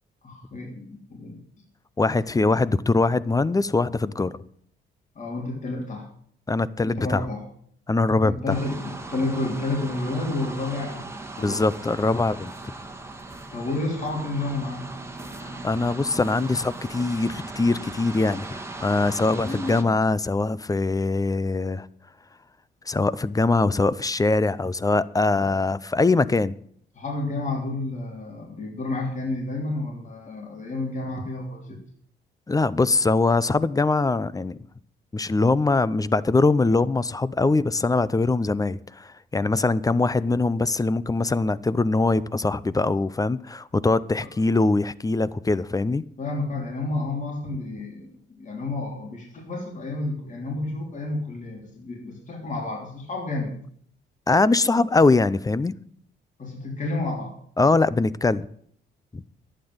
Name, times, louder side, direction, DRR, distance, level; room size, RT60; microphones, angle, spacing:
voice 1, 0.2-1.4 5.2-6.1 6.8-7.4 8.2-11.1 11.4-11.7 13.5-14.9 19.3-19.9 25.4-25.5 26.9-31.8 44.2-44.3 46.2-53.5 56.4-57.3, left 2 dB, 40° left, 3.6 m, -30 dB
voice 2, 2.0-4.4 6.5-7.2 7.9-8.3 11.4-12.5 15.5-21.9 22.9-26.5 32.5-34.6 35.1-46.0 54.3-55.7 57.6-58.5 59.1-59.2, left 3 dB, 15° left, 0.6 m, -22 dB
sound 1, 8.5-19.8, right 2 dB, 15° right, 1.8 m, -38 dB
11.5 x 9.0 x 8.0 m
cardioid pair, 90°, 20 cm